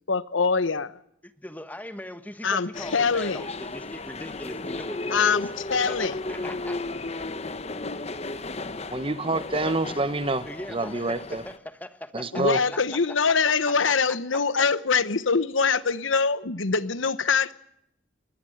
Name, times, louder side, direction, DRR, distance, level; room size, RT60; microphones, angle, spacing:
voice 1, 0.1-0.9 2.4-3.5 5.1-6.2 12.3-17.5, left 5 dB, 75° left, 1.1 m, -24 dB
voice 2, 1.2-5.4 5.9-6.8 10.4-14.2 14.6-14.7, left 1 dB, 10° left, 1.3 m, -40 dB
sound 1, 2.7-11.6, left 2 dB, 35° left, 1.0 m, -34 dB
voice 3, 8.9-11.4 12.1-12.6, right 2 dB, 25° right, 1.0 m, -27 dB
21.5 x 20.0 x 7.9 m
head